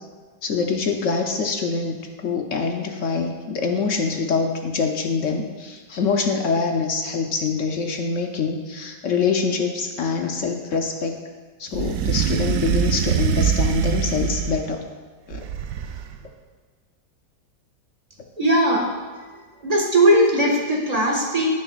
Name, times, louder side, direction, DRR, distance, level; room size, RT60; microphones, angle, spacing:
voice 1, 0.4-11.2 11.6-14.8 15.3-15.5, left 5 dB, 60° left, 3 dB, 0.8 m, -25 dB
sound 1, 11.7-14.8 15.3-16.2, right 8 dB, 70° right, 1.0 m, -23 dB
voice 2, 18.4-18.9 19.6-21.5, right 1 dB, 20° right, -1 dB, 1.5 m, -18 dB
15.5 x 6.9 x 2.4 m, 1.5 s
omnidirectional pair, 2.0 m